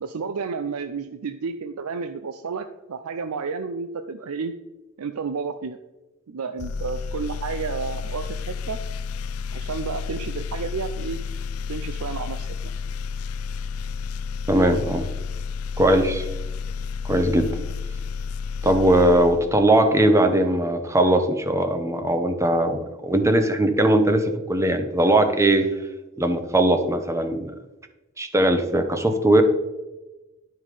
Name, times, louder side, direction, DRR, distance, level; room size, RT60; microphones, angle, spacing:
voice 1, 0.0-4.5 5.0-5.8 6.3-8.8 9.5-11.2 11.7-12.7, right 5 dB, 90° right, 9 dB, 0.5 m, -31 dB
sound 1, 6.6-20.0, left 5 dB, 80° left, 0.4 m, -31 dB
voice 2, 14.5-15.1 15.8-16.2 17.0-17.5 18.6-25.7 26.2-27.5 28.2-29.4, right 1 dB, 15° right, 7 dB, 0.9 m, -20 dB
11.0 x 5.6 x 4.9 m, 1.1 s
head